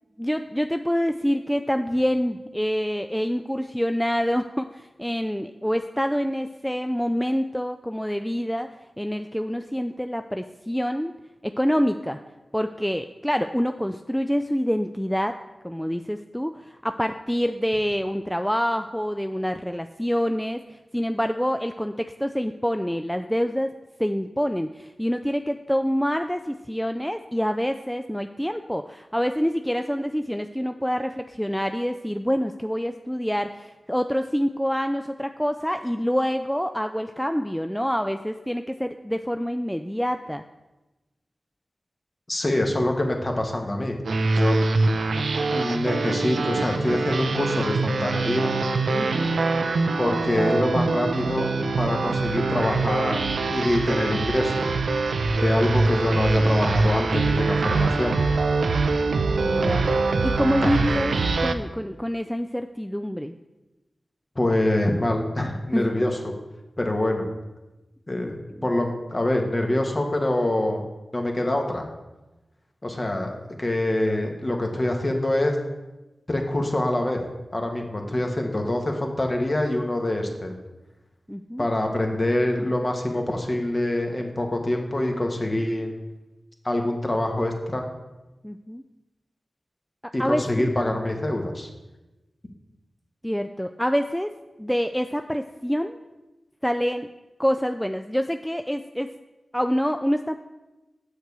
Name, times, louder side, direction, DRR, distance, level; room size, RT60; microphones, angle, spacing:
voice 1, 0.2-11.1 11.4-12.2 12.5-15.4 15.6-23.7 24.0-40.4 48.9-49.3 59.4-60.0 60.2-63.4 65.7-65.9 81.3-81.6 88.4-88.8 90.2-90.7 93.2-94.3 94.6-96.0 96.6-97.1 97.4-99.1 99.5-100.3, equal, 5° left, 7 dB, 0.3 m, -26 dB
voice 2, 42.3-44.0 44.4-44.6 45.5-48.5 50.0-51.5 51.8-54.7 55.3-58.2 60.6-60.8 64.3-66.3 66.8-67.3 68.1-70.8 71.1-71.8 72.8-73.3 73.6-75.6 76.3-77.2 77.5-80.6 81.6-85.9 86.6-87.9 90.1-91.7, left 1 dB, 35° left, 2 dB, 1.3 m, -25 dB
sound 1, 44.0-61.5, right 3 dB, 90° right, 0.5 m, -24 dB
6.9 x 6.5 x 4.7 m, 1.1 s
cardioid pair, 45°, 0 cm